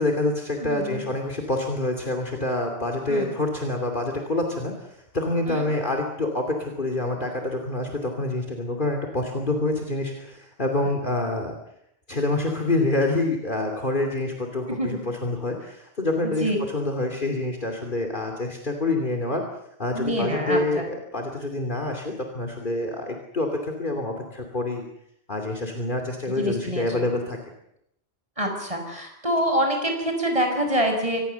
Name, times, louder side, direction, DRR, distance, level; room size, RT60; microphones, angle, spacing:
voice 1, 0.0-11.5 12.1-19.4 19.8-24.9 25.3-27.4, left 2 dB, 50° left, 2 dB, 2.9 m, -27 dB
voice 2, 0.6-1.0 3.1-3.3 5.5-5.7 10.8-10.9 14.8-14.9 16.4-16.6 19.9-20.9 26.4-26.9 28.4-31.2, equal, 30° right, 3 dB, 5.9 m, -26 dB
25.0 x 19.5 x 6.9 m, 0.75 s
omnidirectional pair, 1.1 m